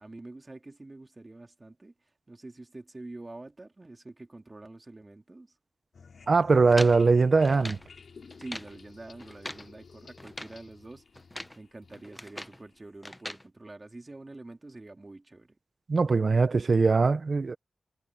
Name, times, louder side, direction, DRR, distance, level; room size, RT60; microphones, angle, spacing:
voice 1, 0.0-1.9 2.3-5.5 8.3-11.1 11.5-15.6, right 2 dB, 25° right, 3.0 m, -46 dB
sound 1, 5.9-13.4, left 5 dB, 60° left, 3.2 m, -53 dB
voice 2, 6.3-7.8 15.9-17.6, right 4 dB, 40° right, 0.8 m, -21 dB
sound 2, 6.7-7.9 8.3-8.8 9.2-9.7 10.2-10.6 11.2-11.6 11.9-12.6 13.0-13.5, left 1 dB, 5° left, 0.8 m, -41 dB
wide cardioid pair, 140°, 0 cm